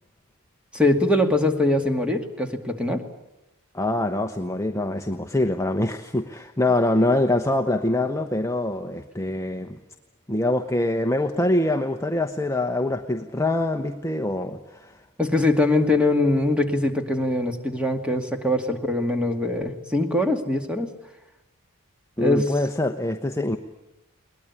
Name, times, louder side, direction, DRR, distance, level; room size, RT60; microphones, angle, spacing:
voice 1, 0.7-3.0 15.2-20.9 22.2-22.5, left 2 dB, 5° right, 4 dB, 2.3 m, -22 dB
voice 2, 3.7-9.8 10.3-15.0 22.2-23.6, left 1 dB, 15° left, 4 dB, 1.0 m, -24 dB
21.5 x 20.0 x 9.8 m, 0.94 s
head